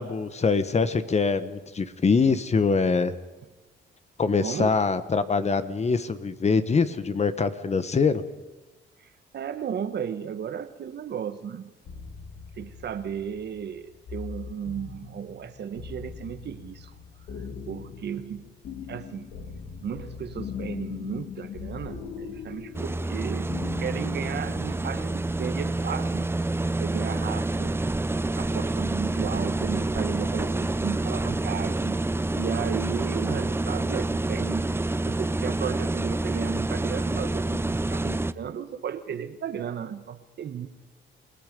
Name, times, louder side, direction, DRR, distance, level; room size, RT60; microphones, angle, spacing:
voice 1, 0.0-3.1 4.2-8.2, left 4 dB, 35° left, 11 dB, 1.3 m, -24 dB
voice 2, 4.4-4.8 9.3-11.7 12.6-16.9 17.7-18.5 18.9-19.3 19.8-23.5 23.8-26.4 26.8-27.8 28.4-32.0 32.3-34.7 35.1-40.7, right 8 dB, 60° right, 10 dB, 1.3 m, -34 dB
sound 1, 11.8-25.2, left 6 dB, 70° left, 2.8 m, -40 dB
sound 2, 22.7-38.3, right 2 dB, 10° right, 0.6 m, -28 dB
29.0 x 17.0 x 5.4 m, 1.1 s
cardioid pair, 90°, 20 cm